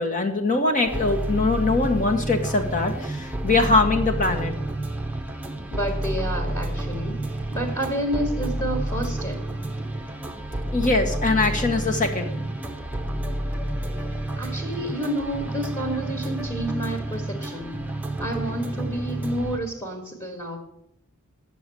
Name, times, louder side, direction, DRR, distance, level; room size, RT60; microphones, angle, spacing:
voice 1, 0.0-4.5 10.7-12.3, left 3 dB, 40° left, 3 dB, 1.7 m, -22 dB
sound 1, 0.9-19.6, right 1 dB, 10° right, 0.9 m, -30 dB
voice 2, 5.7-7.2 7.5-9.4 14.4-17.8 18.2-20.6, right 1 dB, 15° left, 2 dB, 2.0 m, -29 dB
9.2 x 6.9 x 8.6 m, 0.73 s
head